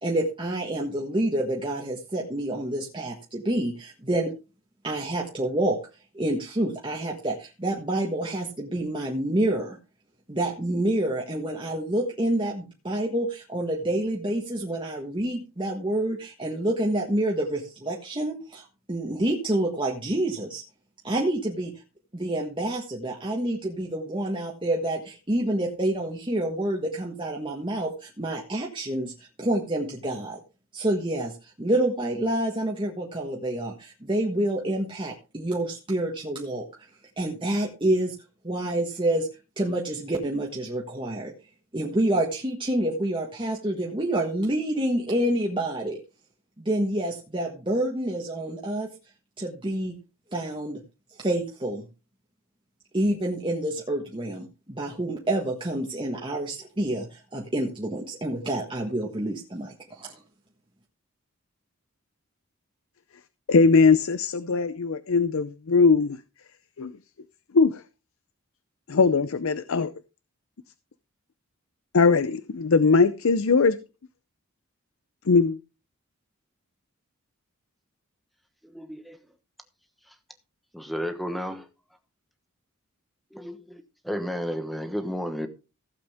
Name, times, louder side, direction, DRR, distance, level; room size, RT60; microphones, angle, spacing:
voice 1, 0.0-4.3 4.8-5.8 6.1-9.8 10.3-20.6 21.0-21.7 22.1-30.4 30.7-36.7 37.2-38.1 38.4-39.3 39.6-41.3 41.7-46.0 46.6-48.9 49.4-50.0 50.3-50.8 51.2-51.9 52.9-60.2, right 1 dB, 20° right, 1.4 m, -28 dB
voice 2, 63.5-66.2 66.8-66.9 67.5-67.8 68.9-69.9 71.9-73.8 75.3-75.6, left 4 dB, 70° left, 0.5 m, -20 dB
voice 3, 78.6-79.2 80.7-81.7 83.3-85.5, equal, ahead, 1.1 m, -32 dB
15.5 x 7.8 x 3.5 m
head